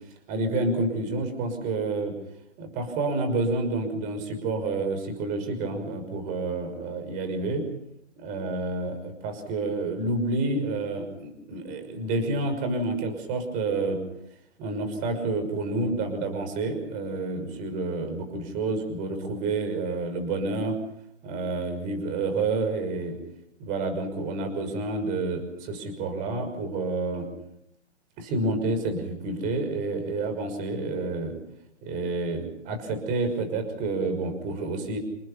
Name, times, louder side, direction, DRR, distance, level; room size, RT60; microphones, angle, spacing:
voice 1, 0.3-2.1 2.6-7.6 8.2-14.0 14.6-20.8 21.2-23.2 23.6-27.3 28.2-31.3 31.8-35.0, right 3 dB, 25° right, 7 dB, 6.0 m, -29 dB
28.0 x 20.0 x 5.8 m, 0.76 s
hypercardioid pair, 150°, 35 cm